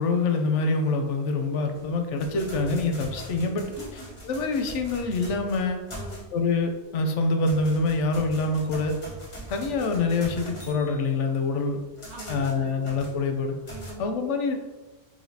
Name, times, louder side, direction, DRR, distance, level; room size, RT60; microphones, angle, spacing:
voice 1, 0.0-3.7 4.3-5.8 6.3-9.0 9.5-11.8 12.3-13.6 14.0-14.6, left 3 dB, 85° left, 4 dB, 1.0 m, -25 dB
sound 1, 1.7-6.6 7.0-13.9, equal, 30° left, 1.0 m, -42 dB
voice 2, 3.6-4.2 5.9-6.3 12.1-12.9 13.7-14.1, right 2 dB, 65° right, -2 dB, 1.2 m, -44 dB
4.9 x 3.0 x 2.7 m, 1.2 s
omnidirectional pair, 1.2 m